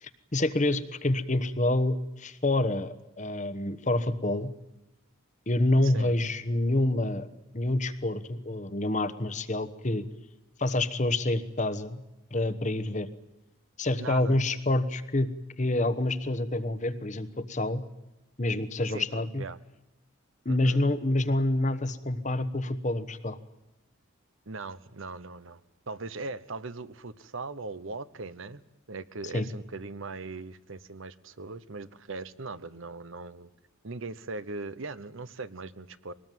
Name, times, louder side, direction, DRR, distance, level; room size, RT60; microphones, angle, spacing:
voice 1, 0.0-4.5 5.5-7.3 7.5-10.1 10.6-12.0 12.3-13.1 13.8-15.3 15.6-17.8 18.4-19.4 20.4-23.4 29.3-29.5, left 1 dB, 35° left, 13 dB, 1.1 m, -27 dB
voice 2, 5.8-6.1 14.0-14.4 18.9-19.1 19.4-19.6 20.5-20.8 24.5-25.6 25.9-28.6 28.9-33.5 33.8-36.1, right 3 dB, 65° right, 15 dB, 0.9 m, -39 dB
23.0 x 19.0 x 9.3 m, 0.95 s
head